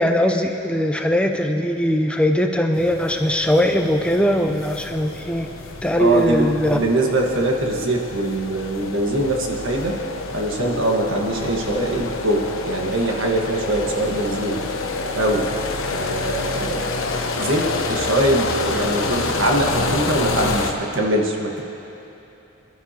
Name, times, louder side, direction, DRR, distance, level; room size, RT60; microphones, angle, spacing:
voice 1, 0.0-5.5 5.8-6.8, equal, 5° left, 4 dB, 0.5 m, -20 dB
sound 1, 2.7-20.7, left 3 dB, 85° left, 1.0 m, -28 dB
voice 2, 6.0-10.0 10.3-14.6 15.1-15.5 15.9-17.0 17.3-21.6, right 1 dB, 75° right, 1 dB, 1.4 m, -22 dB
24.5 x 11.5 x 2.9 m, 3.0 s
head